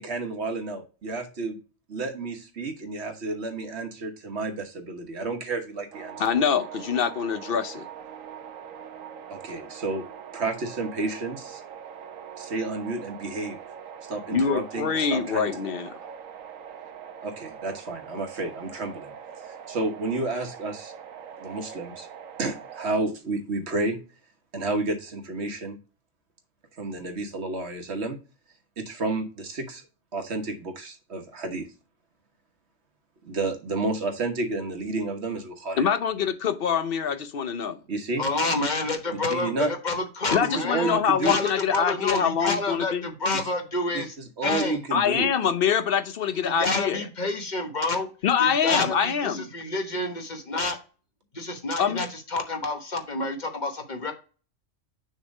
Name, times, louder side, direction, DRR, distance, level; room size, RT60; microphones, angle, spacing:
voice 1, 0.0-1.6 1.9-6.2 9.3-10.0 10.3-11.6 12.4-13.6 14.1-15.5 17.2-19.1 19.7-20.9 21.4-22.1 22.4-24.0 24.5-25.8 26.8-28.2 28.8-29.8 30.1-31.7 33.2-35.9 37.9-38.2 39.3-39.7 40.5-41.4 43.9-44.0 44.4-45.3, right 3 dB, 55° right, 1.5 m, -31 dB
sound 1, 5.9-22.9, right 8 dB, 85° right, 1.2 m, -42 dB
voice 2, 6.2-7.9 14.3-15.9 35.8-37.8 40.3-43.1 44.9-47.0 48.2-49.5 51.8-52.0, left 7 dB, 55° left, 0.7 m, -25 dB
voice 3, 38.2-44.1 44.4-44.8 46.4-48.1 48.4-50.8 51.3-54.1, left 3 dB, 35° left, 1.2 m, -28 dB
6.4 x 3.3 x 5.2 m
omnidirectional pair, 1.4 m